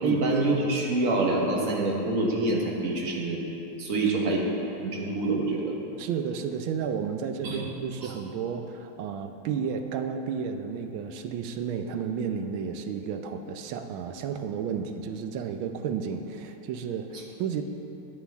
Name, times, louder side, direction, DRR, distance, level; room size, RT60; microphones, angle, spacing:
voice 1, 0.0-3.4 3.8-4.5 4.8-5.7 7.4-7.6 8.0-8.1, right 2 dB, 45° right, -2 dB, 1.5 m, -26 dB
voice 2, 6.0-17.6, right 7 dB, 75° right, 7 dB, 1.4 m, -32 dB
12.5 x 9.0 x 3.5 m, 3.0 s
omnidirectional pair, 2.3 m